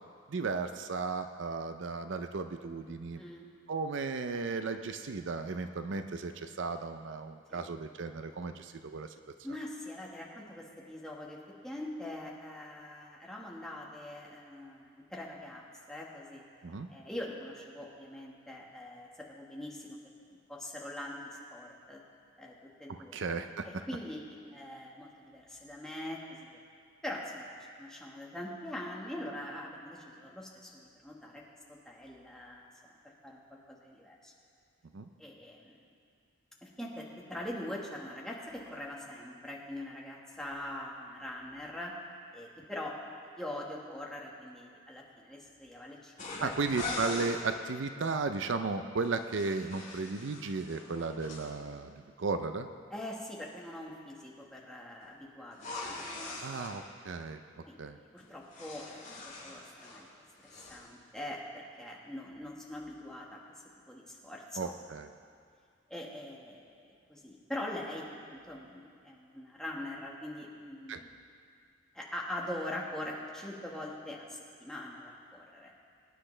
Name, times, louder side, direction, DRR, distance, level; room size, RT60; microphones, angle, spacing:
voice 1, 0.3-3.2 3.7-9.1 16.6-16.9 22.9-23.7 34.9-35.1 46.4-52.7 56.4-57.4 57.8-58.0 64.6-65.1 70.9-71.0, right 4 dB, 65° right, 8 dB, 0.5 m, -35 dB
voice 2, 3.1-3.5 7.5-7.6 9.4-16.4 16.9-20.0 20.5-22.0 22.4-23.2 23.6-26.6 27.0-27.5 27.8-31.4 31.7-33.0 33.2-34.3 35.2-35.8 36.6-41.9 42.3-42.9 43.3-46.1 46.4-46.5 52.9-56.4 57.7-57.8 58.1-60.1 60.5-64.7 65.9-66.8 67.1-71.1 71.9-75.7, left 1 dB, 5° left, -3 dB, 1.5 m, -43 dB
sound 1, 46.2-47.4 49.0-51.4 55.5-56.7 58.2-60.1 60.4-60.8, left 2 dB, 40° left, 3.8 m, -42 dB
23.5 x 10.0 x 3.3 m, 2.3 s
head